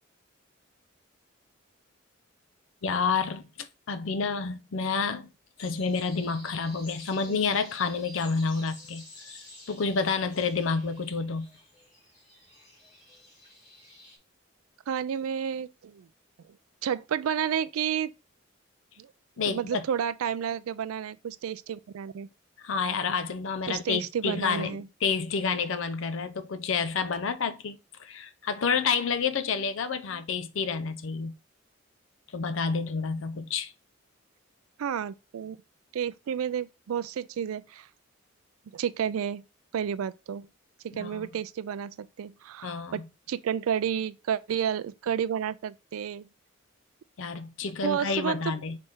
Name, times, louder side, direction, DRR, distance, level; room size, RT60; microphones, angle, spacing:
voice 1, 2.8-5.3 5.6-11.5 19.4-19.8 22.6-31.3 32.3-33.7 40.9-41.4 42.6-43.0 47.2-48.8, left 5 dB, 70° left, 0.5 m, -29 dB
sound 1, 5.6-14.2, left 1 dB, 35° left, 1.7 m, -51 dB
voice 2, 14.9-16.1 16.8-18.1 19.0-19.1 19.4-22.3 23.7-24.9 34.8-35.6 35.9-37.9 38.7-39.4 39.7-40.5 40.8-46.3 47.6-48.5, right 8 dB, 90° right, 0.3 m, -31 dB
4.1 x 3.3 x 3.5 m
head